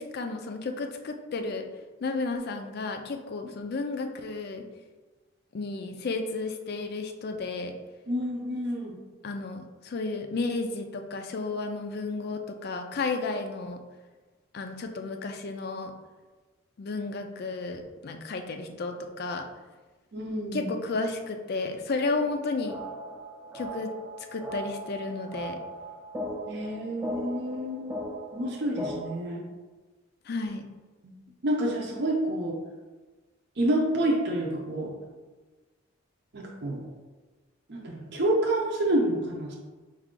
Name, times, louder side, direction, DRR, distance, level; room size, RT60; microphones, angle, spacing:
voice 1, 0.0-1.7 2.0-4.6 5.5-7.7 9.2-13.8 14.5-15.9 16.8-19.4 20.5-22.8 23.5-23.9 24.3-25.6 30.3-30.6, left 3 dB, 50° left, 5 dB, 0.4 m, -32 dB
voice 2, 8.1-8.9 20.1-20.7 26.5-28.0 28.3-29.4 31.0-31.2 31.4-32.6 33.6-34.9 36.3-36.8 37.7-39.5, right 1 dB, 55° right, -2 dB, 0.6 m, -28 dB
sound 1, 22.2-29.2, right 1 dB, 10° right, 0.5 m, -38 dB
4.7 x 2.4 x 3.6 m, 1.3 s
head